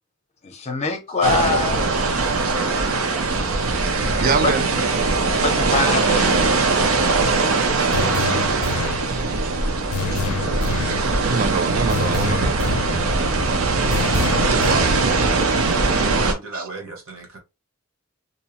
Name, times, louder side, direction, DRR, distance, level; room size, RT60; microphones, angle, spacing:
voice 1, 0.4-1.9 3.9-4.5 5.4-6.5, left 3 dB, 30° left, 0.6 m, -24 dB
sound 1, 1.2-16.3, right 3 dB, 90° right, 0.6 m, -21 dB
voice 2, 4.2-4.7 9.1-9.5 10.1-10.2 11.2-12.7 14.6-15.3 16.3-16.7, right 5 dB, 45° right, 0.4 m, -26 dB
sound 2, 7.9-9.1 9.9-11.1 11.9-13.1 13.9-15.1, left 4 dB, 85° left, 0.4 m, -27 dB
voice 3, 16.3-17.4, right 3 dB, 65° right, 1.0 m, -35 dB
2.7 x 2.0 x 2.8 m
head